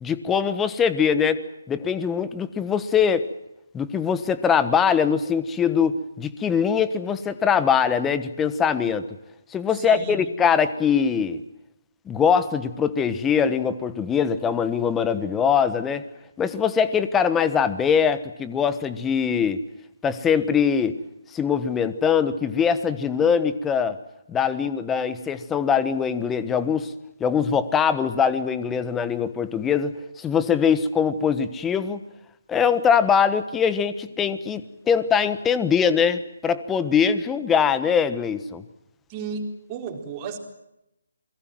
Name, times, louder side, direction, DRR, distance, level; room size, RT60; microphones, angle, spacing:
voice 1, 0.0-1.4 1.7-3.3 3.7-9.1 9.5-11.4 12.1-16.0 16.4-19.6 20.0-21.0 21.3-24.0 24.3-26.9 27.2-32.0 32.5-34.6 34.9-38.6, left 7 dB, 10° left, 13 dB, 1.3 m, -22 dB
voice 2, 9.7-10.3 39.1-40.4, right 5 dB, 25° right, 2 dB, 4.2 m, -34 dB
28.0 x 22.5 x 7.7 m, 0.87 s
figure-of-eight pair, 145°, 0 cm